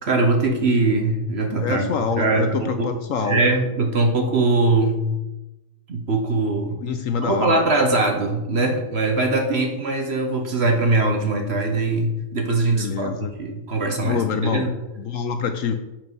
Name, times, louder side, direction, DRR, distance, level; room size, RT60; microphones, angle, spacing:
voice 1, 0.0-1.9 2.2-2.9 3.2-5.1 5.9-6.8 7.2-14.7, right 2 dB, 45° right, 3 dB, 1.2 m, -21 dB
voice 2, 1.6-3.4 6.8-7.6 12.7-13.3 14.0-14.7 15.0-15.8, left 6 dB, 65° left, 8 dB, 0.9 m, -25 dB
7.4 x 5.9 x 5.4 m, 0.99 s
omnidirectional pair, 1.7 m